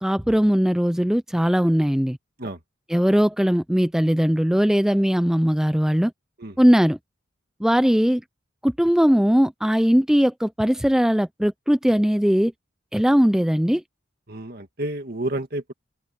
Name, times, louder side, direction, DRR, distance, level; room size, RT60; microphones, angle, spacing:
voice 1, 0.0-2.2 2.9-6.1 6.6-7.0 7.6-8.2 8.6-12.5 12.9-13.8, equal, 5° right, 0.4 m, -19 dB
voice 2, 14.3-15.7, right 1 dB, 50° right, 2.1 m, -30 dB
open air
head